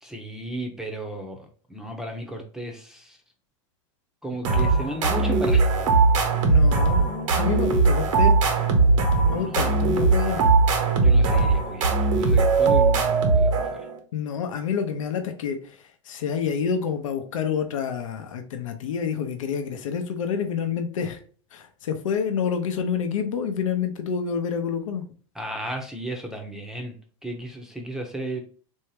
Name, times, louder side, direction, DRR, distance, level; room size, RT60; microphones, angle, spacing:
voice 1, 0.0-3.2 4.2-5.7 9.2-10.2 11.0-13.9 25.3-27.0 27.2-28.4, right 1 dB, 5° right, 2 dB, 0.6 m, -35 dB
sound 1, 4.4-14.0, right 3 dB, 80° right, 1.0 m, -20 dB
voice 2, 6.4-8.4 9.3-10.4 14.1-21.2 21.5-25.0, left 7 dB, 85° left, 7 dB, 0.6 m, -28 dB
3.3 x 2.7 x 3.1 m, 0.42 s
supercardioid pair, 125°, 16 cm